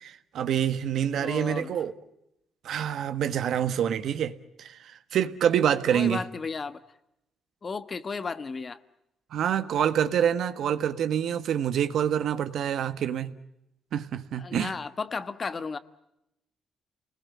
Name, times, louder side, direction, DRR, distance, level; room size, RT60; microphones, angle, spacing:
voice 1, 0.0-1.9 2.6-4.8 5.1-6.2 9.3-13.3 13.9-14.7, right 9 dB, 70° right, 11 dB, 1.4 m, -26 dB
voice 2, 1.2-1.7 5.9-6.8 7.6-8.8 14.4-15.8, left 4 dB, 35° left, 13 dB, 1.3 m, -34 dB
29.0 x 20.5 x 8.5 m, 0.85 s
cardioid pair, 90°, 0 cm